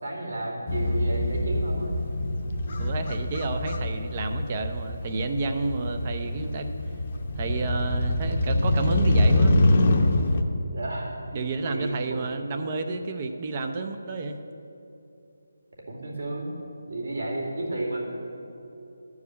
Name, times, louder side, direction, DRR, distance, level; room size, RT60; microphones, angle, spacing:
voice 1, 0.0-2.0 2.6-2.9 10.7-11.1 11.6-12.3 15.9-16.6 16.9-18.0, right 1 dB, 65° right, -2 dB, 2.5 m, -32 dB
Motorcycle, 0.7-10.4, left 1 dB, 35° left, 0.7 m, -25 dB
voice 2, 2.8-6.7 7.4-9.6 11.3-14.4, right 3 dB, 25° right, 6 dB, 0.5 m, -30 dB
12.0 x 4.8 x 8.1 m, 2.9 s
figure-of-eight pair, 170°, 0 cm